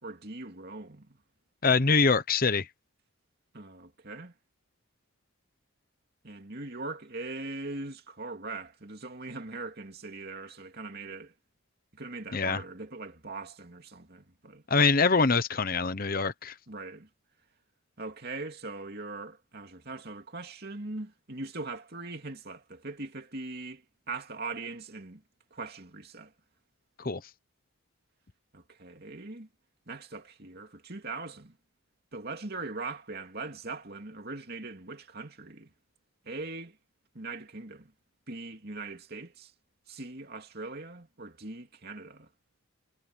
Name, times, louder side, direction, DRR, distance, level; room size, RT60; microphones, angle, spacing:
voice 1, 0.0-1.2 3.5-4.3 6.2-11.3 11.9-14.6 16.7-17.1 18.0-25.2 25.5-26.3 28.5-29.5 29.9-31.6 32.1-35.7 36.2-36.8 37.1-37.9 38.3-39.5 39.9-42.3, right 3 dB, 50° right, 2.8 m, -41 dB
voice 2, 1.6-2.7 12.3-12.6 14.7-16.5 27.0-27.2, left 4 dB, 40° left, 0.9 m, -24 dB
head